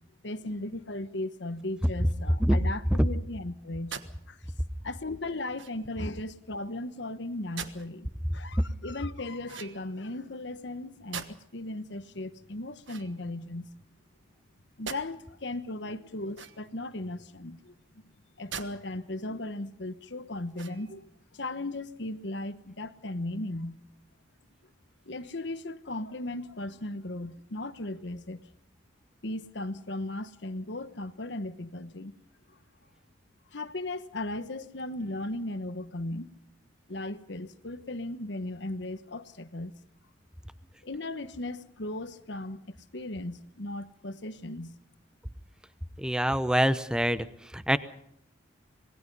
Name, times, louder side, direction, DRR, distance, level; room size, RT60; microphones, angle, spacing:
voice 1, 0.2-4.0 4.3-4.4 4.8-8.1 8.3-13.7 14.8-17.7 18.4-23.8 25.1-28.4 29.2-32.1 33.5-36.3 36.9-39.7 40.8-44.8, left 2 dB, 60° left, 11 dB, 1.2 m, -37 dB
sound 1, 3.9-4.1 5.5-6.0 7.6-7.9 9.4-10.1 11.1-11.6 12.8-13.7 14.9-15.1 16.3-16.9 18.5-18.7 19.2-19.3 20.5-21.0, right 7 dB, 70° right, 1.4 m, -42 dB
voice 2, 46.0-47.3 47.5-47.8, equal, 5° right, 13 dB, 0.8 m, -24 dB
26.5 x 19.5 x 5.5 m, 0.72 s
head